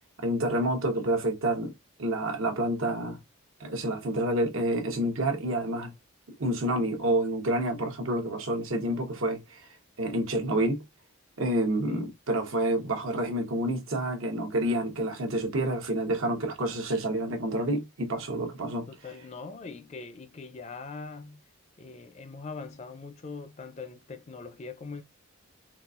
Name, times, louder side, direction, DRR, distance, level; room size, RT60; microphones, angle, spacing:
voice 1, 0.2-1.7 2.0-3.2 3.6-5.9 6.4-9.7 10.0-10.8 11.4-18.9, right 1 dB, 75° right, 1.0 m, -28 dB
voice 2, 18.9-21.4 21.8-25.0, left 4 dB, 30° left, 0.4 m, -42 dB
4.0 x 2.4 x 2.4 m
head